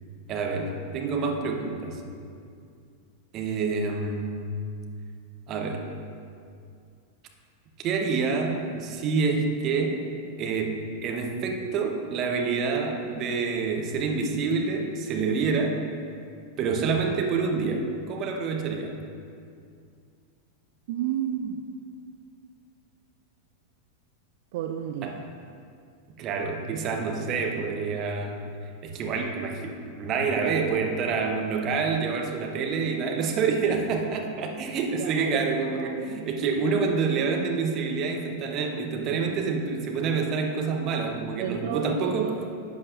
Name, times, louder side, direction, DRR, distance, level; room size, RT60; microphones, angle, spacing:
voice 1, 0.3-2.0 3.3-4.5 5.5-5.8 7.8-10.0 10.4-15.8 16.6-19.0 25.0-25.2 26.2-28.4 28.8-42.3, right 4 dB, 35° right, 2 dB, 1.0 m, -27 dB
voice 2, 20.9-21.6 24.5-25.2 27.2-27.4 34.9-36.2 41.4-42.4, right 9 dB, 50° right, 4 dB, 0.4 m, -32 dB
12.0 x 7.6 x 2.7 m, 2.4 s
figure-of-eight pair, 90°, 0 cm